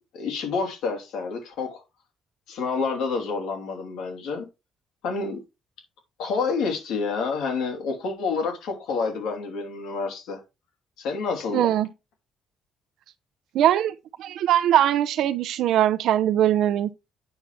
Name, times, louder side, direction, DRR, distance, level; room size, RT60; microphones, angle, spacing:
voice 1, 0.1-1.8 2.5-4.5 5.0-5.4 6.2-10.4 11.0-11.7, left 4 dB, 75° left, 3.0 m, -28 dB
voice 2, 11.5-11.9 13.5-16.9, right 11 dB, 65° right, 0.6 m, -21 dB
8.9 x 5.8 x 3.5 m
cardioid pair, 165°, 0 cm